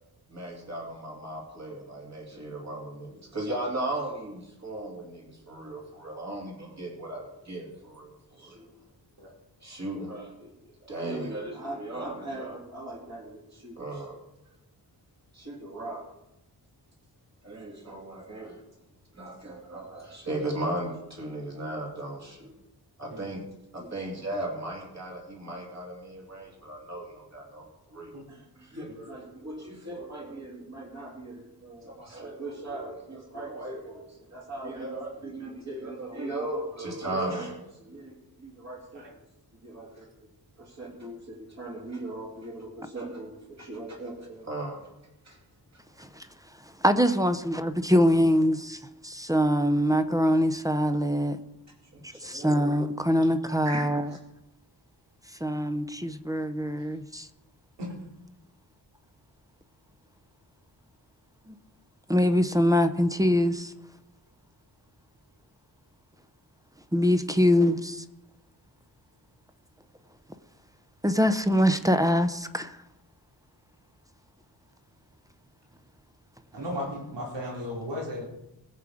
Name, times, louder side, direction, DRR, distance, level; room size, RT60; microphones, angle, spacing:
voice 1, 0.3-8.7 9.6-14.2 15.3-16.0 17.4-18.6 19.1-22.5 23.0-23.4 23.7-38.1 38.4-39.0 39.6-40.1 40.6-44.9 45.2-45.4 51.9-52.7 53.6-53.9, right 1 dB, 40° right, 2.8 m, -37 dB
voice 2, 46.8-51.4 52.2-54.1 55.4-57.3 61.5-61.6 62.1-63.7 66.9-68.0 71.0-72.8, equal, 10° right, 0.6 m, -24 dB
voice 3, 76.5-78.2, left 1 dB, 80° right, 3.5 m, -35 dB
20.5 x 7.2 x 4.9 m
wide cardioid pair, 175°, 42 cm